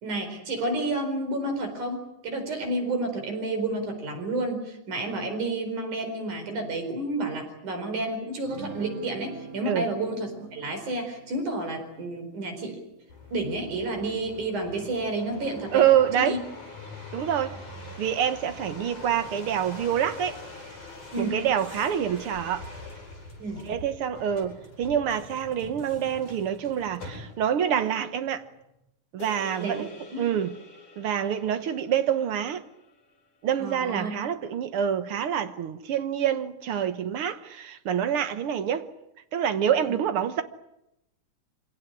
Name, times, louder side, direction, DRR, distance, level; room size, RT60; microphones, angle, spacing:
voice 1, 0.0-12.8 13.3-15.9 16.2-16.4 21.1-21.4 23.4-23.7 29.6-29.8 30.1-30.3 33.6-34.1 39.9-40.0, right 2 dB, 70° right, 6.0 m, -30 dB
sound 1, 8.4-14.1, right 4 dB, 25° right, 3.7 m, -46 dB
sound 2, 13.1-27.6 28.2-28.8, left 3 dB, 70° left, 9.5 m, -43 dB
voice 2, 15.7-16.4 17.1-17.6 18.0-20.4 21.2-22.7 23.6-28.4 29.1-29.9 30.2-30.5 31.0-32.6 33.4-38.9 39.3-40.4, right 9 dB, 55° right, 1.7 m, -26 dB
sound 3, 29.2-33.7, left 4 dB, 45° left, 4.5 m, -48 dB
26.0 x 17.5 x 10.0 m
omnidirectional pair, 3.6 m